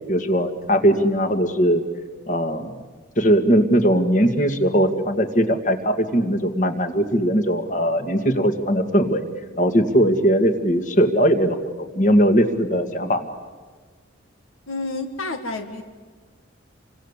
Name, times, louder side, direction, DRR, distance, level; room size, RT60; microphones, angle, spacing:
voice 1, 0.1-1.8 2.3-2.7 3.2-9.2 9.6-13.3, equal, 40° left, 7 dB, 2.2 m, -19 dB
voice 2, 14.7-15.8, left 2 dB, 90° left, 6 dB, 2.0 m, -29 dB
28.5 x 25.0 x 8.4 m, 1.5 s
head